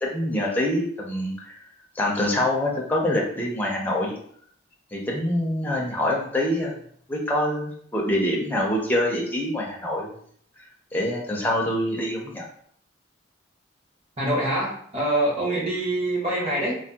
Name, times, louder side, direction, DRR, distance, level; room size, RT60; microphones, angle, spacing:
voice 1, 0.0-1.5 2.0-4.1 4.9-6.7 7.1-10.1 10.9-12.4, left 1 dB, 10° left, -3 dB, 0.4 m, -25 dB
voice 2, 14.2-16.8, right 1 dB, 30° right, -5 dB, 0.9 m, -25 dB
3.4 x 2.0 x 2.7 m, 0.62 s
head